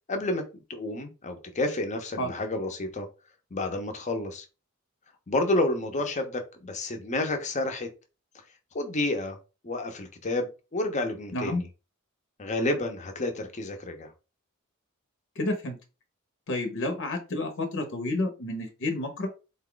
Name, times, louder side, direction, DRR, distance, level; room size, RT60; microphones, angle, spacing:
voice 1, 0.1-3.1 3.5-4.4 5.3-7.9 8.7-9.4 9.6-11.7 12.4-14.1, left 2 dB, 35° left, 0.7 m, -30 dB
voice 2, 15.4-15.8 16.5-19.3, left 2 dB, 60° left, 0.9 m, -30 dB
4.0 x 2.3 x 3.8 m
head